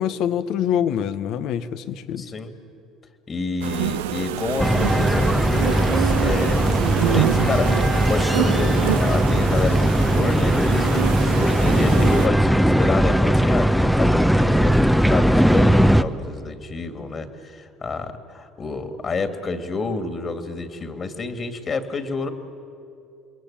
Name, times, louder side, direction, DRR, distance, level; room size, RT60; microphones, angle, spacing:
voice 1, 0.0-2.2, left 9 dB, 65° left, 12 dB, 1.1 m, -25 dB
voice 2, 2.2-2.5 3.3-22.3, left 4 dB, 40° left, 9 dB, 2.4 m, -29 dB
sound 1, 3.6-12.3, right 12 dB, 85° right, 0.7 m, -26 dB
sound 2, 4.6-16.0, equal, ahead, 0.9 m, -19 dB
28.5 x 22.0 x 8.8 m, 2.6 s
hypercardioid pair, 65°, 0 cm